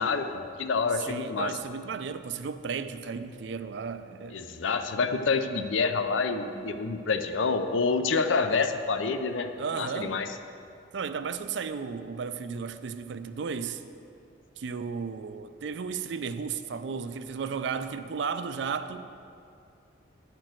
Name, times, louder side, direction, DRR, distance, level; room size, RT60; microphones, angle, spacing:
voice 1, 0.0-1.5 4.3-9.5 9.8-10.3, left 4 dB, 80° left, 0.5 m, -27 dB
voice 2, 1.1-4.4 9.6-10.2 10.9-13.8 14.6-19.1, right 5 dB, 65° right, 0.4 m, -34 dB
10.0 x 4.5 x 7.6 m
head